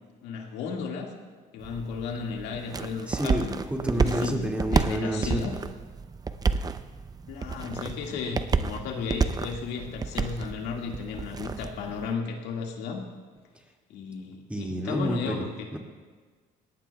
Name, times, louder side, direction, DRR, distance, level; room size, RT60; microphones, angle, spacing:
voice 1, 0.2-1.1 1.5-3.6 3.9-5.6 7.3-13.1 13.9-15.7, left 5 dB, 85° left, 1 dB, 2.0 m, -34 dB
sound 1, 1.6-12.1, right 4 dB, 20° right, 0.5 m, -30 dB
voice 2, 3.0-5.5 14.5-15.8, equal, 5° right, 0 dB, 2.2 m, -30 dB
21.0 x 18.0 x 2.3 m, 1.5 s
cardioid pair, 110°, 17 cm